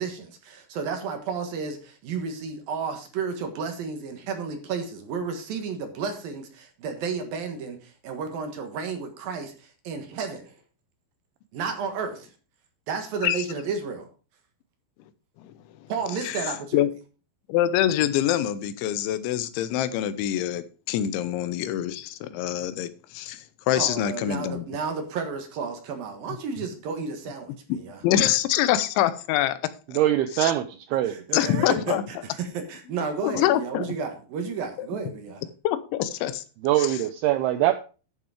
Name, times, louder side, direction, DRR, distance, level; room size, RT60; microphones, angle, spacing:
voice 1, 0.0-10.5 11.5-12.3 12.9-14.1 15.9-16.9 23.7-28.0 31.0-35.5, right 5 dB, 60° right, 6 dB, 2.9 m, -32 dB
voice 2, 17.5-24.7 27.7-30.0 30.3-30.5 31.3-32.0 33.2-33.9 34.8-34.9 35.6-36.4 36.8-37.0, left 12 dB, 90° left, 14 dB, 3.2 m, -25 dB
voice 3, 29.9-31.2 36.6-37.7, right 13 dB, 90° right, 10 dB, 2.3 m, -23 dB
11.5 x 6.9 x 4.9 m, 0.35 s
omnidirectional pair, 5.3 m